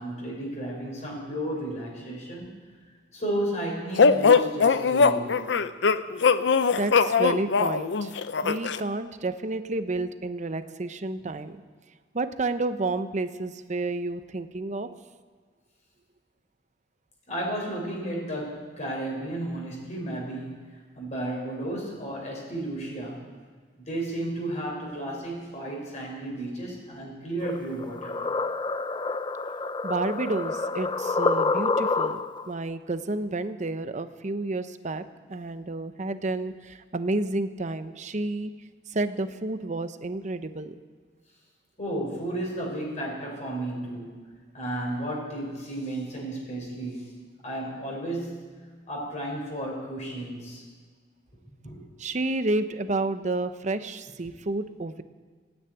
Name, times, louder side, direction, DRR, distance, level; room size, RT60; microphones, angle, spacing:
voice 1, 0.0-2.5 3.1-5.5 11.2-11.3 17.3-23.3 23.8-28.2 41.8-44.2 44.5-47.1 47.4-48.6 48.9-50.6 51.6-51.8, right 1 dB, 40° left, -1 dB, 4.5 m, -33 dB
sound 1, 4.0-8.8, left 5 dB, 75° left, 0.6 m, -21 dB
voice 2, 6.7-8.1 8.4-11.6 12.1-14.9 29.8-32.2 32.5-35.0 35.3-38.5 38.9-40.7 52.0-55.0, right 2 dB, 40° right, 11 dB, 0.8 m, -30 dB
sound 2, 27.4-32.5, left 3 dB, 25° left, 0.5 m, -28 dB
16.0 x 9.7 x 9.1 m, 1.5 s
head